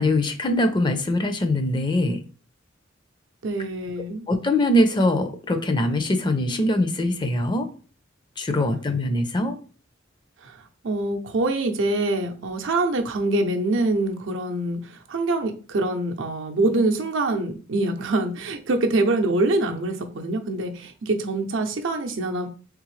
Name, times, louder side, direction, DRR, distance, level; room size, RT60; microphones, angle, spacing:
voice 1, 0.0-2.2 4.3-7.7 8.4-9.6, left 1 dB, 25° left, 7 dB, 0.5 m, -22 dB
voice 2, 3.4-4.3 10.4-22.5, right 2 dB, 75° right, 5 dB, 0.6 m, -25 dB
3.6 x 3.3 x 3.2 m, 0.39 s
head